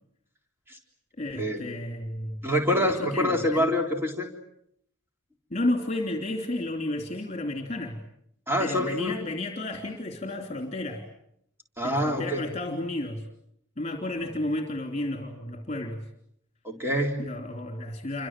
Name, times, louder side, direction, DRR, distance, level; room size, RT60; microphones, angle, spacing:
voice 1, 1.2-2.4 2.7-3.7 5.5-8.0 8.6-11.0 11.8-13.3 13.8-16.1 17.2-18.3, left 1 dB, 30° left, 4 dB, 3.0 m, -32 dB
voice 2, 2.4-4.3 8.5-9.2 11.8-12.4 16.6-17.2, equal, 10° right, 2 dB, 3.7 m, -26 dB
29.0 x 25.5 x 7.6 m, 0.74 s
head